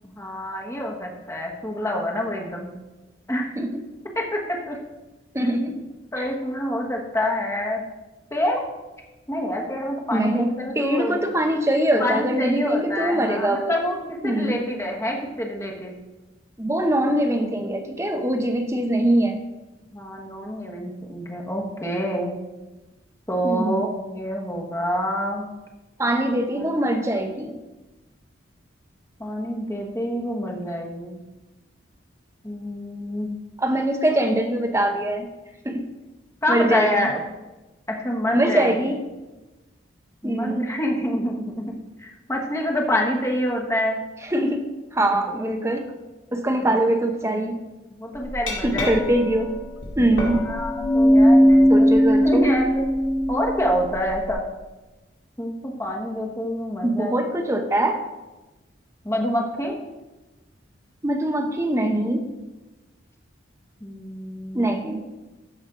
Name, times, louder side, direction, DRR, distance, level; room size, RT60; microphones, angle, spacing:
voice 1, 0.0-2.7 3.3-3.5 4.1-4.8 6.1-7.8 8.3-8.6 9.3-11.4 12.0-15.9 19.9-22.3 23.3-25.4 26.5-26.8 29.2-31.2 32.4-33.3 36.4-37.1 37.9-38.8 40.2-44.0 46.7-46.8 48.0-49.0 50.5-52.0 52.2-52.9 53.3-54.4 55.4-57.1 59.0-59.7 63.8-64.8, equal, 15° left, 0 dB, 1.1 m, -27 dB
voice 2, 5.3-5.8 6.2-6.3 10.1-10.5 10.8-13.7 14.2-14.6 16.6-19.4 23.4-23.9 26.0-27.5 33.6-35.3 35.6-35.8 36.5-37.1 38.3-38.9 40.2-40.6 44.2-44.6 44.9-45.9 46.3-47.6 48.6-49.5 50.0-50.4 51.7-52.4 56.8-58.0 61.0-62.2 64.5-65.0, right 1 dB, 15° right, 5 dB, 0.7 m, -22 dB
Glass, 48.2-54.3, equal, 85° left, 2.4 m, -19 dB
14.0 x 5.3 x 3.7 m, 1.1 s
head